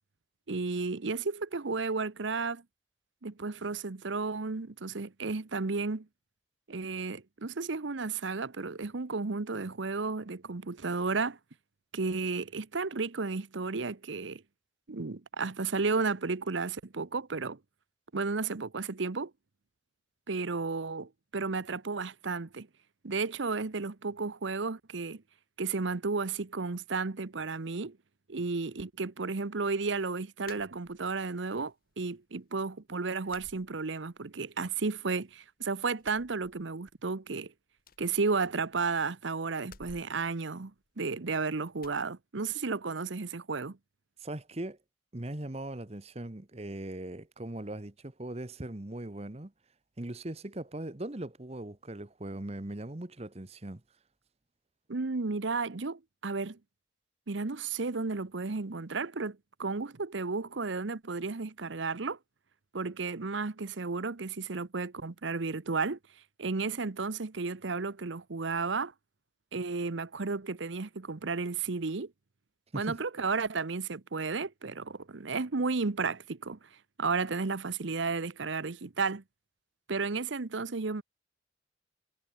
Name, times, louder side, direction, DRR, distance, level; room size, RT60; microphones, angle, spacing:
voice 1, 0.5-2.6 3.2-6.1 6.7-11.4 11.9-14.4 14.9-17.6 18.1-19.3 20.3-22.7 23.0-25.2 25.6-28.0 28.3-37.5 38.0-43.8 54.9-56.6 57.3-62.2 62.7-66.0 66.4-68.9 69.5-72.1 72.7-76.6 77.0-79.2 79.9-81.0, right 4 dB, 75° right, 0.9 m, -33 dB
sound 1, 30.4-31.3 31.7-32.4 32.7-32.8 33.3-34.4 34.7-35.5 35.9-37.1 37.3-37.4 37.8-38.9 39.6-41.3 41.8-42.1, left 4 dB, 50° left, 2.1 m, -56 dB
voice 2, 44.2-44.8 45.1-49.5 50.0-53.8 72.7-73.0, right 1 dB, 30° right, 1.0 m, -39 dB
head